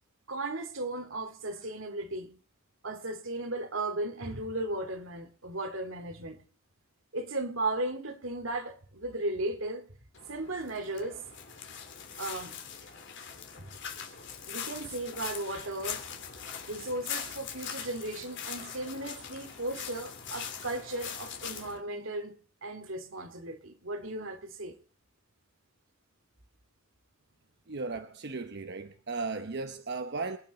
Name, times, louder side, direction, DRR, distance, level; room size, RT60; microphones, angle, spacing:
voice 1, 0.3-2.3 2.8-6.4 7.1-9.9 10.3-11.2 12.1-12.5 13.6-13.7 14.5-16.0 16.7-22.3 22.6-24.8, right 2 dB, 80° right, 2.5 m, -36 dB
sound 1, 10.1-21.8, left 7 dB, 60° left, 3.4 m, -42 dB
voice 2, 27.7-30.4, right 3 dB, 55° right, 0.9 m, -36 dB
26.5 x 9.4 x 4.2 m
head